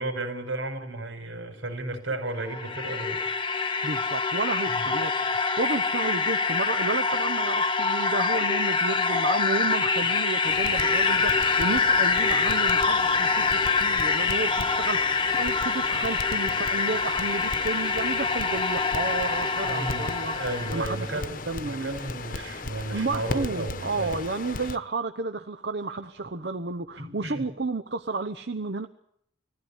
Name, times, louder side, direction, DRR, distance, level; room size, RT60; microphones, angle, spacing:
voice 1, 0.0-3.2 4.7-4.8 19.6-24.2 27.0-27.4, right 2 dB, 85° right, 7 dB, 5.2 m, -34 dB
sound 1, 2.3-21.0, left 4 dB, 25° left, 1.2 m, -25 dB
voice 2, 3.8-20.3 20.7-22.0 22.9-28.9, right 3 dB, 60° right, 7 dB, 0.9 m, -32 dB
Crackle, 10.4-24.8, left 3 dB, 45° left, 1.0 m, -37 dB
20.5 x 15.0 x 9.9 m, 0.70 s
head